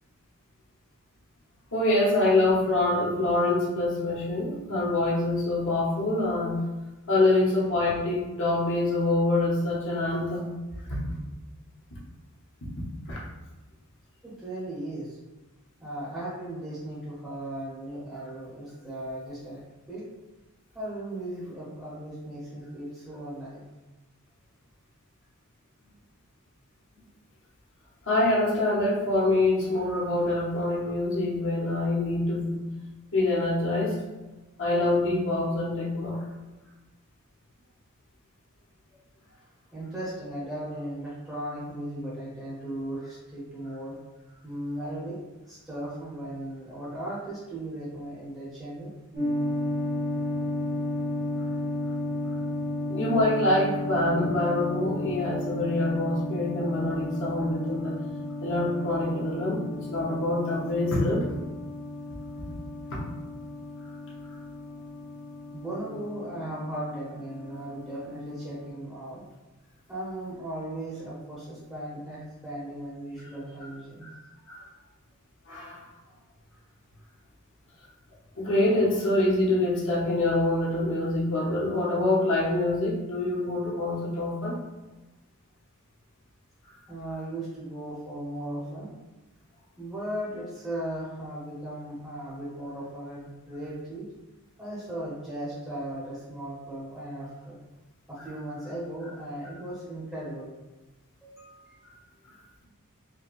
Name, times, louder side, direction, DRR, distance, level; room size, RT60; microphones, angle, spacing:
voice 1, 1.7-6.6 7.1-10.5 10.8-11.1 11.9-12.0 12.8-13.2 28.1-32.6 33.1-34.0 34.6-36.3 52.9-58.0 58.4-61.2 62.9-63.0 74.0-74.1 74.5-74.6 75.5-75.8 78.4-84.6, left 2 dB, 60° left, -5 dB, 1.0 m, -25 dB
voice 2, 14.2-15.2 15.8-19.6 19.9-20.0 20.7-23.6 39.7-43.9 44.3-45.2 45.5-48.9 65.5-69.2 69.9-74.1 86.9-88.9 89.8-94.1 94.6-97.5 98.1-100.5 101.2-101.8, right 1 dB, 10° right, -9 dB, 0.9 m, -37 dB
sound 1, 49.1-68.7, left 1 dB, 55° right, 1.5 m, -34 dB
4.9 x 2.3 x 2.5 m, 1.1 s
head